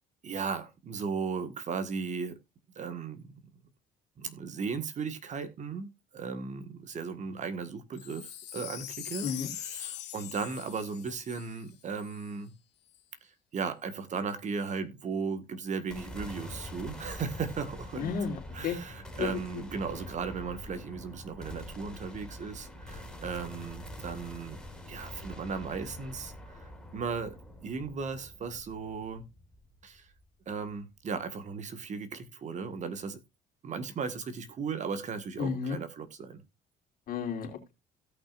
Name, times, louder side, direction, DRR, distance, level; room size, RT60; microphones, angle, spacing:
voice 1, 0.2-2.4 2.7-3.3 4.2-12.5 13.2-18.2 18.5-24.6 24.9-27.4 27.6-29.3 29.8-30.1 30.4-33.2 33.6-36.4, right 5 dB, 45° right, 1.6 m, -36 dB
Wind chime, 7.9-12.3 12.9-13.0, left 13 dB, 85° left, 1.9 m, -42 dB
sound 1, 15.9-30.2, left 1 dB, 5° left, 3.5 m, -45 dB
voice 2, 18.0-18.8 19.2-19.3 35.4-35.8 37.1-37.7, left 6 dB, 60° left, 3.3 m, -32 dB
16.5 x 5.8 x 2.5 m
cardioid pair, 110°, 17 cm